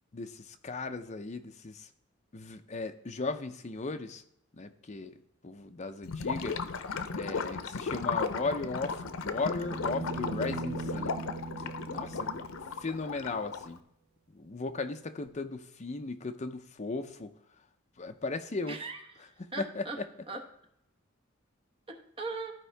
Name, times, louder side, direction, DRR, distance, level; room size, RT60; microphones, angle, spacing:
voice 1, 0.1-1.9 2.3-4.2 4.5-6.6 7.1-11.1 11.6-12.3 12.8-13.8 14.3-17.4 18.0-18.8 19.4-20.0, left 3 dB, 35° left, 7 dB, 0.6 m, -37 dB
Gurgling / Liquid, 6.0-13.8, left 4 dB, 90° left, 0.6 m, -36 dB
sound 1, 8.8-12.9 15.3-15.4, right 3 dB, 70° right, 0.7 m, -40 dB
voice 2, 18.7-20.0 20.3-20.4 21.9-22.5, right 3 dB, 25° right, 3 dB, 1.1 m, -39 dB
14.0 x 4.7 x 3.3 m, 0.75 s
head